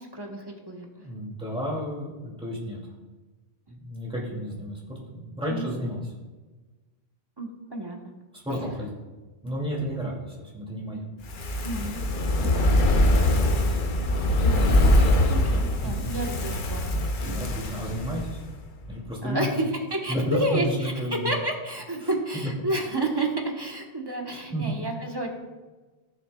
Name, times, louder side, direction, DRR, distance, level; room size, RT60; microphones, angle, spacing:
voice 1, 0.0-0.9 5.5-5.7 7.4-8.1 11.6-12.0 12.3-12.7 13.1-13.2 14.4-14.8 15.3-17.5 17.9-18.0 19.2-20.9 21.2-25.3, right 1 dB, 25° right, 1 dB, 1.1 m, -31 dB
voice 2, 1.0-2.8 3.7-6.0 8.3-9.0 9.4-11.1 12.8-13.5 15.8-16.1 17.3-18.4 18.9-19.5 20.1-21.3 22.0-22.5 24.5-24.8, equal, 5° right, -4 dB, 2.2 m, -32 dB
Fire, 11.2-18.6 18.9-19.0, left 1 dB, 50° left, 0.9 m, -23 dB
15.0 x 6.4 x 2.3 m, 1.3 s
omnidirectional pair, 1.1 m